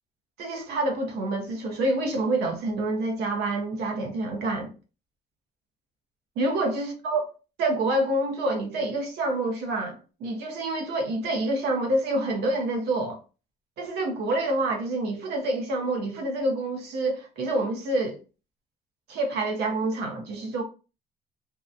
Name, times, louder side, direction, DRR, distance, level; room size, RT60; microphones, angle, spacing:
voice 1, 0.4-4.7 6.4-7.3 7.6-13.2 13.8-18.2 19.1-20.6, right 2 dB, 75° right, 0.8 m, -27 dB
2.8 x 2.1 x 2.4 m
cardioid pair, 110°, 17 cm